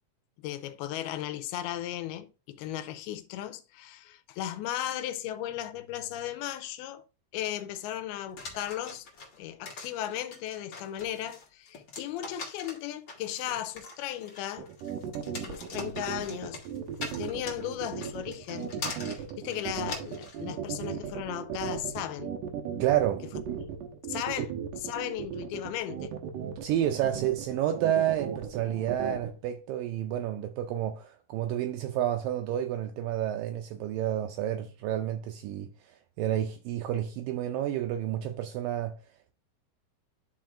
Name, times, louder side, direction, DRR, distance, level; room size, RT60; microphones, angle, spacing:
voice 1, 0.4-7.0 7.3-9.1 9.4-14.7 15.3-16.6 17.2-18.7 19.1-22.3 24.1-24.5 24.8-26.1, left 12 dB, 80° left, 2.5 m, -36 dB
sound 1, 8.4-20.4, left 3 dB, 60° left, 1.2 m, -42 dB
sound 2, 14.6-29.3, right 8 dB, 75° right, 2.1 m, -36 dB
voice 2, 22.8-23.4 24.4-24.5 26.6-39.0, right 11 dB, 90° right, 1.9 m, -30 dB
11.5 x 4.6 x 2.5 m
omnidirectional pair, 4.6 m